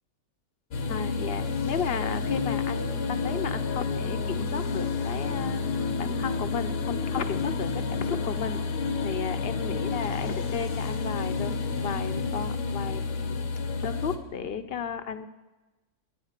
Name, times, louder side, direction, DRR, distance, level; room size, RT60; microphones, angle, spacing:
sound 1, 0.7-14.2, left 4 dB, 90° left, 1.6 m, -30 dB
voice 1, 0.9-5.6 6.0-8.6 9.0-13.4 13.8-15.2, left 7 dB, 50° left, 10 dB, 0.8 m, -34 dB
14.0 x 10.0 x 6.6 m, 1.1 s
omnidirectional pair, 1.7 m